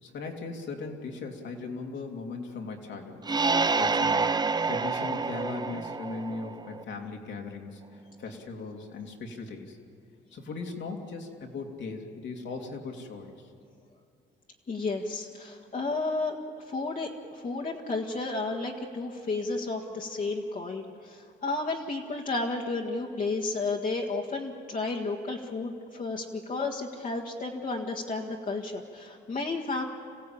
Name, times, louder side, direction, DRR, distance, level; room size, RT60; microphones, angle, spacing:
voice 1, 0.0-3.2 3.8-4.4 4.7-9.8 10.3-13.3, left 3 dB, 65° left, 2 dB, 2.7 m, -38 dB
sound 1, 3.2-6.8, right 4 dB, 20° right, 0.6 m, -28 dB
voice 2, 14.7-16.4 16.7-29.8, left 3 dB, 40° left, -2 dB, 1.8 m, -32 dB
26.5 x 15.5 x 8.6 m, 2.4 s
cardioid pair, 90°, 20 cm